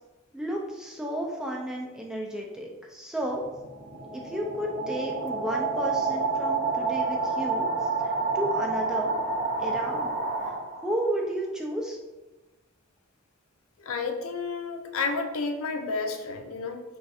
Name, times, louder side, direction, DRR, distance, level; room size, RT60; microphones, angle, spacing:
voice 1, 0.3-3.4 4.1-9.1 9.6-10.1 10.4-12.0, equal, 5° right, -1 dB, 0.3 m, -33 dB
sound 1, 3.3-11.1, right 4 dB, 50° right, 0.6 m, -29 dB
voice 2, 13.8-16.8, left 4 dB, 75° left, 5 dB, 0.4 m, -31 dB
2.5 x 2.4 x 4.0 m, 1.1 s
head